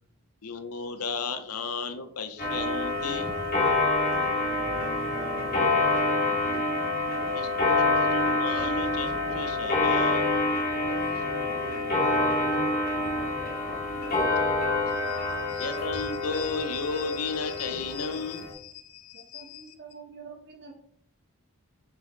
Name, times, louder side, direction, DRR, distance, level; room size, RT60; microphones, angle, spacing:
voice 1, 0.4-3.3 7.3-10.3 14.9-19.7, left 4 dB, 80° left, 8 dB, 0.8 m, -34 dB
Clock, 2.4-18.5, left 2 dB, 40° left, 2.3 m, -27 dB
voice 2, 4.0-6.7 10.9-13.8, right 1 dB, 20° right, -3 dB, 2.4 m, -45 dB
voice 3, 19.1-20.7, right 5 dB, 50° right, 0 dB, 1.7 m, -46 dB
7.3 x 5.7 x 3.3 m, 0.67 s
head